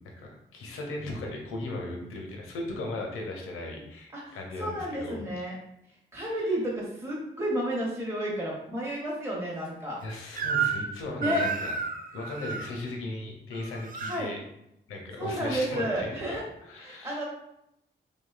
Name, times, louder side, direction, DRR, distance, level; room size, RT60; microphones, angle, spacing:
voice 1, 0.2-5.2 6.2-6.5 10.0-11.7 12.1-14.4 14.9-17.2, left 2 dB, 85° left, 0 dB, 0.5 m, -37 dB
voice 2, 4.1-5.5 6.1-10.0 11.2-11.5 14.0-14.3 15.2-16.4 16.8-17.2, equal, 10° right, -4 dB, 0.7 m, -31 dB
Crying sobbing / Screech, 10.4-10.9 11.2-12.7 13.5-14.2, right 6 dB, 40° right, 0.4 m, -31 dB
2.6 x 2.1 x 2.3 m, 0.81 s
supercardioid pair, 40°, 21 cm